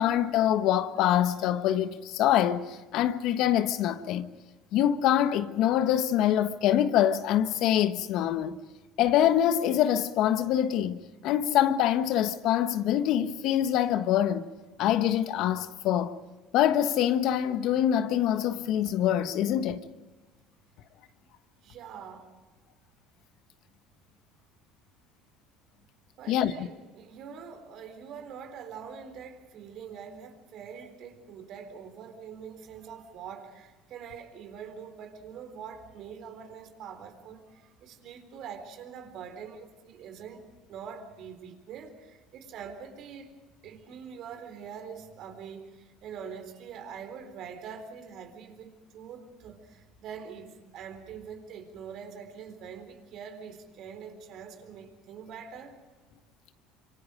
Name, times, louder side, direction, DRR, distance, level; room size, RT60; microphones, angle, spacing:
voice 1, 0.0-4.3 4.7-8.6 9.0-14.5 14.8-16.1 16.5-19.8 26.3-26.5, left 11 dB, 65° left, 1.3 m, -25 dB
voice 2, 21.6-22.3 26.2-43.3 43.6-55.8, right 7 dB, 60° right, 4.0 m, -44 dB
26.5 x 25.0 x 5.2 m
supercardioid pair, 90°, 0 cm